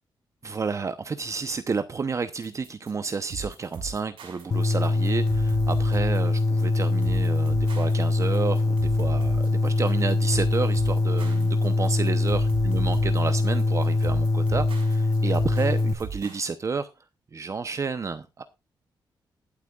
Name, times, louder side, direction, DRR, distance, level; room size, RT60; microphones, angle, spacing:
voice 1, 0.4-16.9 17.3-18.4, right 4 dB, 35° right, 0.8 m, -30 dB
sound 1, 2.4-16.4, right 5 dB, 85° right, 5.6 m, -38 dB
sound 2, 4.5-15.9, left 2 dB, 40° left, 1.2 m, -23 dB
20.5 x 8.3 x 2.4 m
cardioid pair, 115°, 9 cm